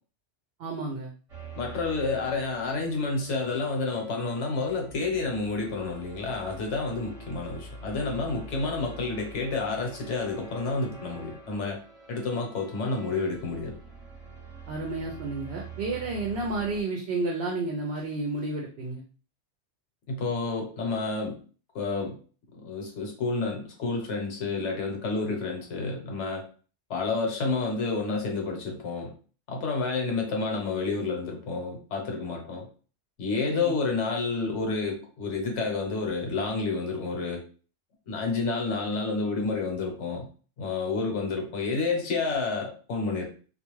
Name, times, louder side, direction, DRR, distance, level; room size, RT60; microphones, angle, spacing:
voice 1, 0.6-1.1 14.7-19.0 33.5-33.7, right 3 dB, 65° right, 0 dB, 0.7 m, -31 dB
sound 1, 1.3-16.8, right 3 dB, 35° right, 0.9 m, -45 dB
voice 2, 1.6-11.8 12.1-13.8 20.1-21.4 21.7-22.1 22.5-26.4 26.9-29.1 29.5-32.6 33.2-37.4 38.1-40.2 40.6-43.3, left 3 dB, 75° left, 1 dB, 1.1 m, -29 dB
2.4 x 2.2 x 3.0 m, 0.39 s
omnidirectional pair, 1.2 m